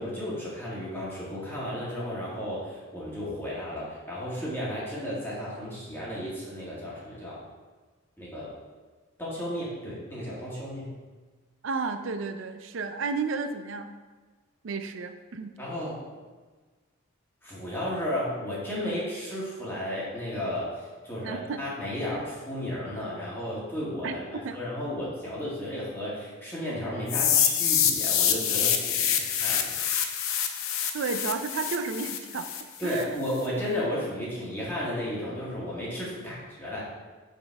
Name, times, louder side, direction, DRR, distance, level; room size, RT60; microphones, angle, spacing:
voice 1, 0.0-7.4 8.2-8.5 9.2-10.9 15.6-16.0 17.4-29.8 32.8-36.8, left 1 dB, 10° left, -7 dB, 1.8 m, -33 dB
voice 2, 11.6-13.9 14.6-15.5 21.2-21.6 24.0-24.1 24.4-24.6 30.9-32.5 32.8-33.2, right 4 dB, 65° right, 8 dB, 0.5 m, -32 dB
sound 1, 27.1-33.0, left 9 dB, 85° left, 0.6 m, -26 dB
6.3 x 5.3 x 3.4 m, 1.3 s
head